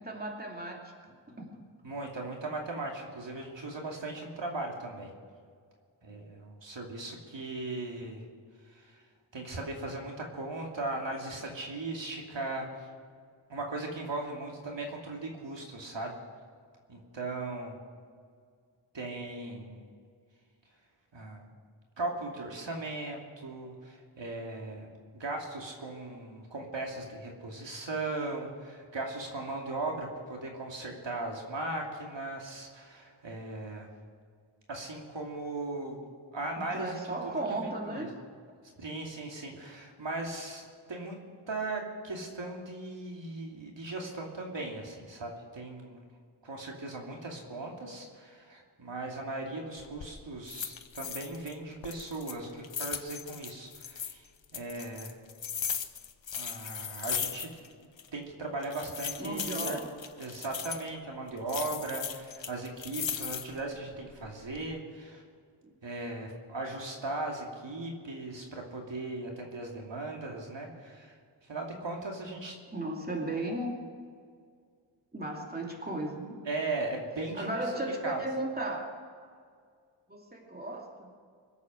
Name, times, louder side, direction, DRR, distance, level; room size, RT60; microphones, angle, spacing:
voice 1, 0.0-1.7 36.6-38.1 59.2-59.9 65.6-65.7 72.7-73.7 75.1-76.3 77.3-78.9 79.2-79.3 80.1-81.1, right 2 dB, 20° right, 0 dB, 2.7 m, -36 dB
voice 2, 1.8-5.1 6.0-8.2 8.6-9.0 9.3-12.9 13.5-16.1 16.9-17.8 18.9-19.8 21.1-21.5 22.0-24.9 25.1-33.9 34.7-36.0 36.3-38.1 38.8-41.2 41.5-46.0 46.4-55.1 56.3-57.5 58.1-59.8 60.2-65.2 65.8-71.2 71.5-72.5 76.4-77.6 78.0-78.2, right 2 dB, 65° right, 0 dB, 2.8 m, -38 dB
sound 1, 49.8-50.1 50.5-51.5 51.8-54.1 54.5-57.7 58.0-58.1 58.6-60.9 61.5-63.6 64.1-64.6, left 7 dB, 65° left, 1.1 m, -37 dB
25.0 x 8.5 x 6.3 m, 2.1 s
wide cardioid pair, 115°, 48 cm